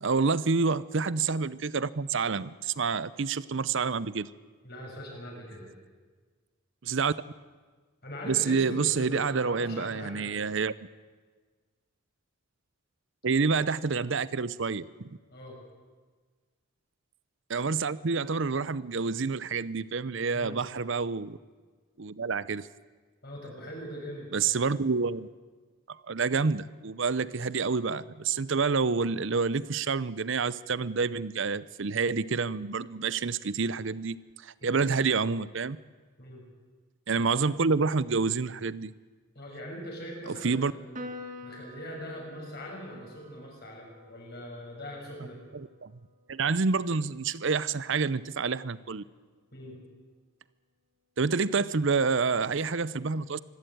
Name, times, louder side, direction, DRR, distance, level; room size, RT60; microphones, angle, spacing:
voice 1, 0.0-4.3 6.8-7.1 8.3-10.7 13.2-15.1 17.5-21.4 22.0-22.7 24.3-25.3 25.9-35.8 37.1-38.9 40.3-40.7 45.5-45.9 46.3-49.0 51.2-53.4, right 4 dB, 60° right, 18 dB, 0.6 m, -28 dB
voice 2, 4.6-5.7 8.0-10.5 15.3-15.6 20.3-20.6 23.2-24.4 34.6-34.8 36.2-36.4 39.3-45.4 49.5-49.8, equal, 45° left, -1 dB, 6.7 m, -42 dB
Piano, 40.9-47.6, left 2 dB, 35° right, 2.2 m, -48 dB
25.5 x 12.5 x 9.2 m, 1.4 s
head